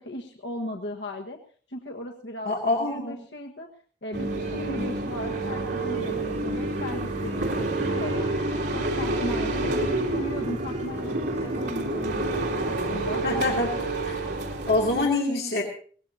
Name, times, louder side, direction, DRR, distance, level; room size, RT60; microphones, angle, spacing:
voice 1, 0.0-1.4 1.7-3.7 4.0-8.4 8.7-14.0, left 1 dB, 90° left, 1 dB, 1.4 m, -37 dB
voice 2, 2.4-3.1 13.2-13.7 14.0-14.2 14.7-15.6, left 2 dB, 60° left, -1 dB, 2.6 m, -25 dB
sound 1, 4.1-15.0, right 2 dB, 85° right, 3.0 m, -28 dB
Wind instrument woodwind instrument, 5.9-13.9, right 3 dB, 40° right, 5.9 m, -46 dB
22.0 x 18.0 x 2.8 m, 0.43 s
head